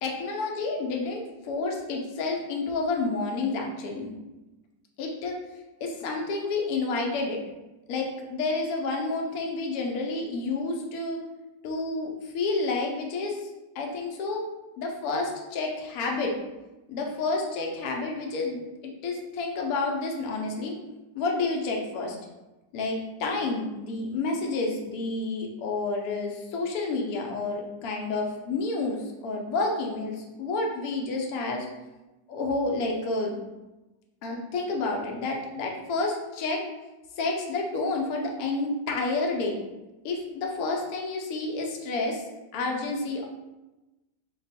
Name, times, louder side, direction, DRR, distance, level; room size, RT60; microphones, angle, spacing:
voice 1, 0.0-4.1 5.0-5.4 5.8-7.4 7.9-11.2 11.6-13.5 13.7-14.4 14.8-16.4 16.9-20.7 21.1-22.2 22.7-31.7 32.3-33.4 34.2-36.6 37.2-39.6 40.0-43.3, left 3 dB, 65° left, 0 dB, 1.0 m, -30 dB
2.9 x 2.2 x 4.1 m, 1.0 s
omnidirectional pair, 1.9 m